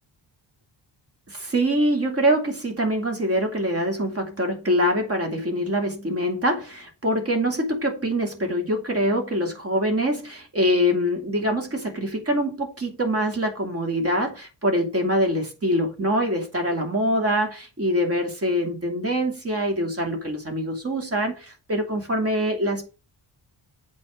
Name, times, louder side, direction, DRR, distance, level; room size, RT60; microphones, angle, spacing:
voice 1, 1.3-22.9, equal, 30° right, 2.6 m, -24 dB
8.4 x 4.4 x 6.3 m
cardioid pair, 105°, 44 cm